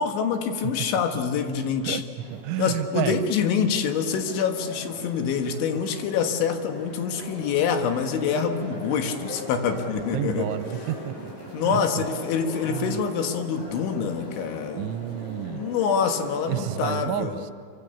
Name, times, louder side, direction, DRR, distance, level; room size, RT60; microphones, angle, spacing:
voice 1, 0.0-2.0 2.6-10.5 11.5-14.9 15.5-17.4, left 6 dB, 80° left, 5 dB, 3.9 m, -26 dB
sound 1, 2.2-17.0, left 1 dB, 45° left, 7.9 m, -40 dB
voice 2, 2.3-3.2 10.1-11.3 11.7-12.0 12.7-13.0 14.8-15.7 16.5-17.5, right 12 dB, 80° right, 12 dB, 3.0 m, -30 dB
26.5 x 24.5 x 7.0 m, 2.2 s
omnidirectional pair, 5.4 m